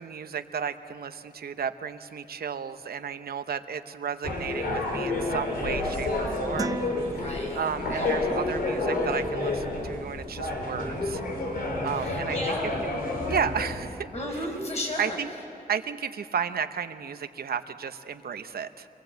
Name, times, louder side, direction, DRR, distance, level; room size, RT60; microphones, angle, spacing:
voice 1, 0.0-6.8 7.6-11.2 11.8-12.4 12.8-12.9 13.3-14.1 15.0-15.3 15.7-18.9, right 7 dB, 90° right, 9 dB, 0.9 m, -33 dB
sound 1, 4.2-13.8, left 2 dB, 90° left, 4.1 m, -29 dB
sound 2, 6.6-8.1, right 3 dB, 25° right, 0.6 m, -37 dB
voice 2, 7.0-8.2 11.9-12.7 14.1-15.2, left 1 dB, 45° left, -1 dB, 5.9 m, -35 dB
26.0 x 20.5 x 8.1 m, 2.5 s
wide cardioid pair, 155°, 15 cm